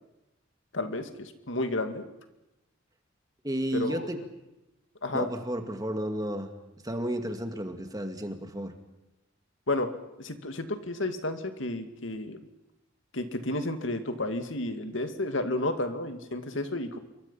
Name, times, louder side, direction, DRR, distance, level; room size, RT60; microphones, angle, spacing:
voice 1, 0.7-2.0 3.7-4.1 5.0-5.3 9.7-9.9 10.2-12.4 13.1-17.0, left 2 dB, 65° left, 7 dB, 2.4 m, -31 dB
voice 2, 3.4-4.2 5.1-6.5 6.8-8.7, equal, 20° right, 6 dB, 2.3 m, -32 dB
27.5 x 24.5 x 5.7 m, 0.93 s
head